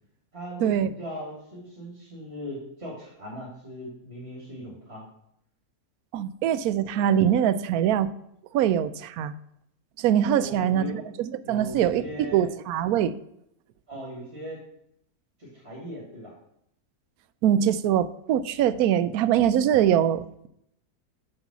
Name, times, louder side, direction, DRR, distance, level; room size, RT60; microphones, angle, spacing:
voice 1, 0.3-5.1 10.2-11.1 11.4-12.6 13.9-14.6 15.4-16.3, equal, 40° right, -4 dB, 2.6 m, -39 dB
voice 2, 6.1-8.1 8.5-9.3 10.0-13.2 17.4-20.5, right 10 dB, 75° right, 14 dB, 1.0 m, -23 dB
7.8 x 6.4 x 5.9 m, 0.75 s
omnidirectional pair, 1.6 m